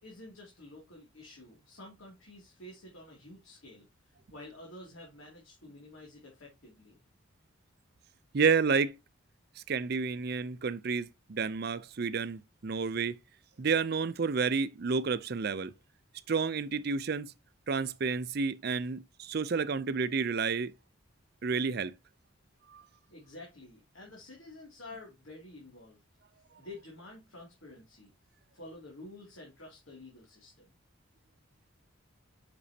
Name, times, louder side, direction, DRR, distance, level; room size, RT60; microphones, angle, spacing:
voice 1, 0.0-7.0 23.1-26.0 26.6-28.1 28.5-30.7, left 2 dB, 75° left, 2.7 m, -50 dB
voice 2, 8.3-9.0 9.7-13.2 13.6-15.7 16.3-17.3 17.7-20.7 21.4-21.9 22.7-22.8, right 5 dB, 50° right, 0.5 m, -30 dB
8.2 x 6.0 x 2.8 m
head